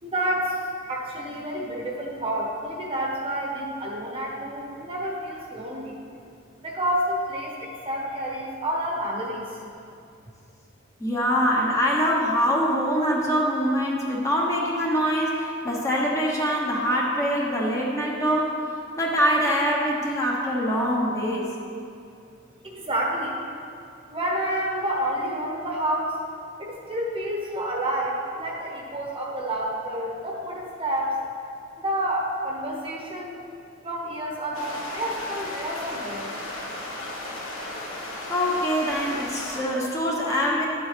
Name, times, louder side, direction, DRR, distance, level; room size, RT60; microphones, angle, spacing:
voice 1, 0.0-6.0 6.6-9.6 22.6-23.4 24.1-26.2 26.6-31.2 31.8-33.4 33.8-36.4, right 1 dB, 25° right, -2 dB, 1.1 m, -29 dB
voice 2, 11.0-18.6 19.0-21.5 38.3-40.7, equal, 15° left, -3 dB, 1.1 m, -24 dB
sound 1, 34.5-39.6, left 1 dB, 90° left, 1.7 m, -35 dB
11.5 x 7.8 x 3.4 m, 2.5 s
head